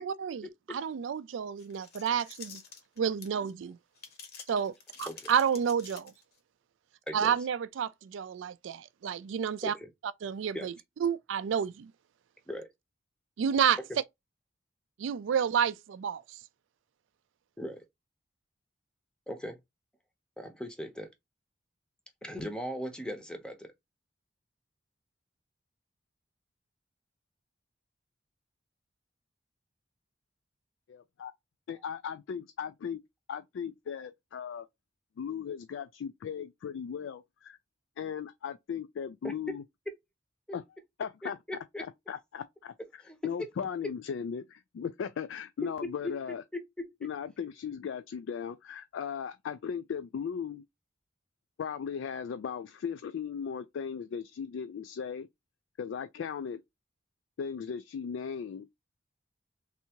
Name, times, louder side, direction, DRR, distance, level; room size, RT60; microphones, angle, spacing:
voice 1, 0.0-2.6 3.0-3.8 4.5-4.7 5.0-6.1 7.1-9.7 10.2-10.7 11.0-11.9 13.4-13.8 15.0-16.4, right 7 dB, 75° right, 0.3 m, -30 dB
sound 1, 1.6-3.5 3.9-6.4, left 6 dB, 55° left, 1.0 m, -48 dB
voice 2, 19.3-19.6 20.4-21.1 22.2-23.7 39.2-39.6 41.5-41.8 43.0-43.2 45.6-45.9 46.5-46.8, equal, 5° left, 0.7 m, -38 dB
voice 3, 30.9-31.3 31.7-33.0 33.3-34.7 35.2-37.6 38.0-39.6 40.5-40.6 41.0-41.4 42.1-46.4 47.0-50.6 51.6-55.3 55.8-56.6 57.4-58.7, left 7 dB, 75° left, 0.3 m, -37 dB
3.4 x 2.7 x 2.8 m
head